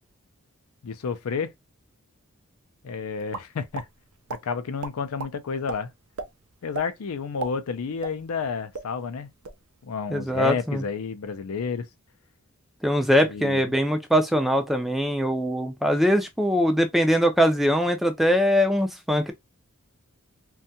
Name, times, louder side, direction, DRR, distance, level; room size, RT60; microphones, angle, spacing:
voice 1, 0.8-1.5 2.8-3.8 4.3-5.9 6.6-9.3 9.8-11.9 13.3-13.6, left 5 dB, 90° left, 0.4 m, -30 dB
sound 1, 3.3-3.9 4.3-4.4 4.8-5.3 5.7-5.8 6.2-6.3 6.7-6.9 7.2-8.5 8.7-8.9 9.3-9.6, right 4 dB, 85° right, 0.5 m, -34 dB
voice 2, 10.1-10.8 12.8-19.3, equal, ahead, 0.4 m, -22 dB
2.7 x 2.2 x 2.6 m
head